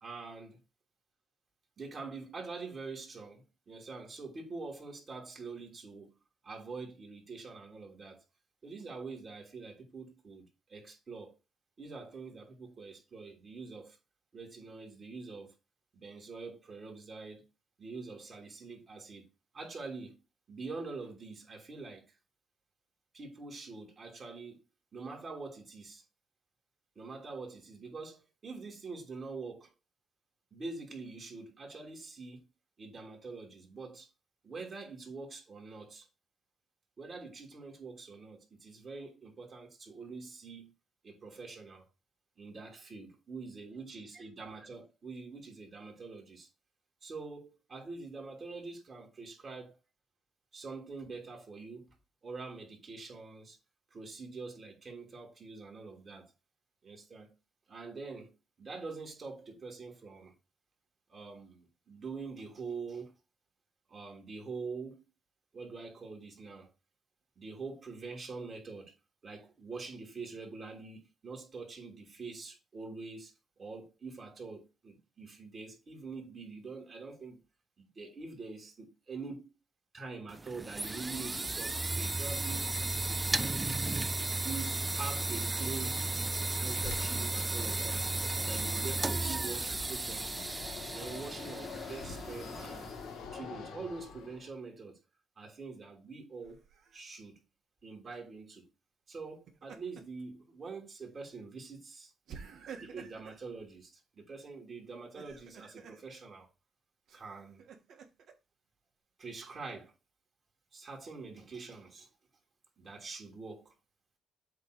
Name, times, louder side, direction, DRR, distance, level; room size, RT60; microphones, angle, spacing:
voice 1, 0.0-0.6 1.8-6.1 6.4-8.2 8.6-11.3 11.8-14.0 14.3-15.5 15.9-17.4 17.8-19.3 19.5-20.2 20.5-22.1 23.1-24.6 24.9-26.0 26.9-29.7 30.5-32.4 32.8-34.1 34.4-36.1 37.0-40.7 41.0-41.9 42.4-46.5 47.0-49.8 50.5-51.9 52.2-53.6 53.9-56.3 56.8-57.3 57.7-58.3 58.6-60.3 61.1-63.1 63.9-65.1 65.5-66.7 67.4-68.9 69.2-77.4 77.8-79.5 79.9-82.7 83.0-83.7 84.3-86.0 86.5-88.1 88.4-90.5 90.9-92.9 93.3-95.0 95.4-96.6 96.9-97.4 97.8-98.7 99.1-102.1 102.8-106.5 107.1-107.7 109.2-109.9 110.7-112.1 112.8-113.7, right 4 dB, 40° right, 2.9 m, -45 dB
sound 1, 80.3-93.1, right 2 dB, 20° right, 0.4 m, -34 dB
Fixed-wing aircraft airplane, 86.8-94.6, left 5 dB, 85° left, 1.6 m, -46 dB
Laughter, 96.4-97.0 99.3-100.2 100.6-100.8 102.3-103.4 105.0-106.0 107.1-108.3, right 6 dB, 70° right, 1.5 m, -50 dB
8.1 x 3.2 x 6.4 m
cardioid pair, 90°, 0 cm